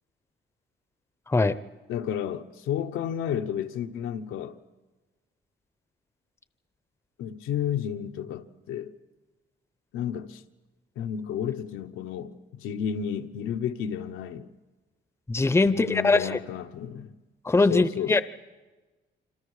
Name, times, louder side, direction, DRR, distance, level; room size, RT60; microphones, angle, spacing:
voice 1, 1.9-4.6 7.2-8.9 9.9-10.4 11.0-14.5 15.6-17.1 17.7-18.2, left 9 dB, 90° left, 1.0 m, -32 dB
voice 2, 15.3-16.4 17.5-18.2, left 3 dB, 15° left, 0.7 m, -22 dB
26.5 x 26.0 x 4.9 m
cardioid pair, 90°, 20 cm